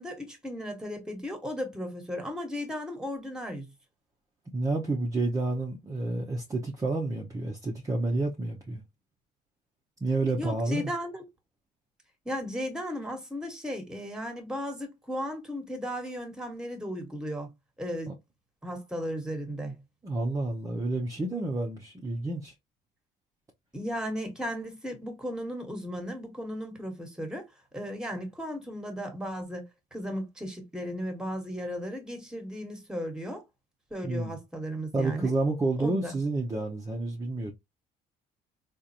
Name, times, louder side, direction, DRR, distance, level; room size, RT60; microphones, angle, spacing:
voice 1, 0.0-3.7 10.3-11.2 12.2-17.5 17.8-18.1 18.6-19.7 23.7-27.4 27.7-29.7 29.9-33.4 33.9-35.3 35.8-36.1, equal, 5° right, 1.3 m, -35 dB
voice 2, 4.5-8.8 10.0-10.9 18.1-18.2 20.0-22.5 34.0-34.4 34.9-37.5, right 2 dB, 20° right, 0.7 m, -30 dB
3.8 x 2.5 x 2.8 m
cardioid pair, 110°, 17 cm